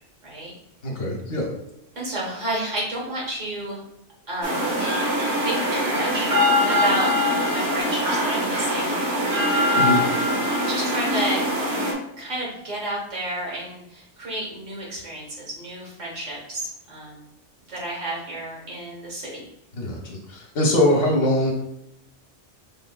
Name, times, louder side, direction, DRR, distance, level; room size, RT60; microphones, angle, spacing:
voice 1, 0.8-1.5 9.7-10.0 19.8-21.5, left 1 dB, 80° left, -1 dB, 1.4 m, -22 dB
voice 2, 2.0-3.8 4.3-4.7 5.1-6.3 6.7-8.9 9.7-10.1 10.7-11.4 12.2-17.3 17.7-19.5, right 1 dB, 80° right, -4 dB, 1.9 m, -31 dB
sound 1, 4.4-11.9, left 1 dB, 60° right, 1.2 m, -22 dB
5.5 x 3.3 x 2.3 m, 0.81 s
omnidirectional pair, 1.3 m